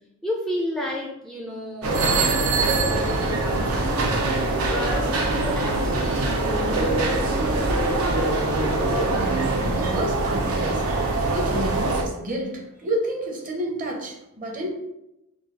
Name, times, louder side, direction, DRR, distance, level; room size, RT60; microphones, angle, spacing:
voice 1, 0.2-4.2 4.7-5.1 5.3-7.7, left 1 dB, ahead, -2 dB, 0.4 m, -33 dB
sound 1, 1.8-12.0, right 2 dB, 75° right, 0.6 m, -23 dB
voice 2, 9.1-10.9 11.3-14.7, right 1 dB, 40° right, -1 dB, 0.9 m, -30 dB
3.8 x 2.3 x 4.0 m, 0.87 s
head